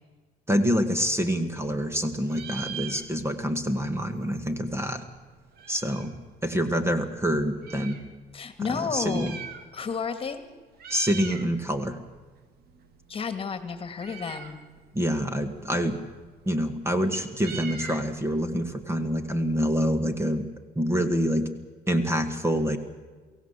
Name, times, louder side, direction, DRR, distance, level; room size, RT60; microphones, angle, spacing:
voice 1, 0.5-5.0 5.7-6.1 6.4-8.0 8.7-9.4 10.9-12.0 14.9-16.0 16.5-20.5 20.8-21.5 21.9-22.8, equal, 15° right, 9 dB, 1.9 m, -26 dB
Meow, 1.0-2.0 2.2-3.5 3.8-3.9 4.1-6.2 6.8-8.0 8.8-10.0 10.3-10.5 10.7-11.5 11.9-19.7, right 7 dB, 65° right, 2.3 m, -43 dB
voice 2, 8.3-9.3 9.7-10.4 13.1-14.6, left 5 dB, 35° left, 10 dB, 2.2 m, -31 dB
23.0 x 17.0 x 8.3 m, 1.3 s
cardioid pair, 110°, 17 cm